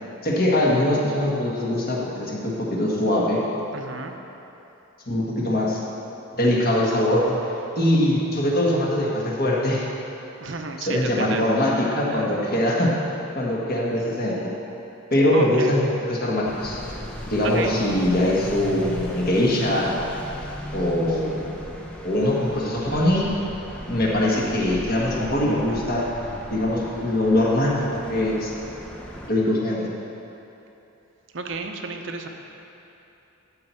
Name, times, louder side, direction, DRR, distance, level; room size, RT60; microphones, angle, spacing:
voice 1, 0.2-3.4 5.1-5.8 6.3-7.3 7.8-9.9 10.8-12.9 13.4-14.5 15.1-16.8 17.2-20.0 20.7-21.4 22.0-23.3 23.9-26.1 26.5-28.5 29.3-29.8, left 1 dB, 45° left, -4 dB, 1.7 m, -22 dB
voice 2, 3.7-4.2 10.4-11.6 12.1-12.5 15.3-15.8 17.4-17.8 31.3-32.3, right 3 dB, 60° right, 4 dB, 0.8 m, -32 dB
sound 1, 16.4-29.3, equal, 5° left, 0.7 m, -36 dB
13.5 x 4.6 x 7.0 m, 3.0 s
head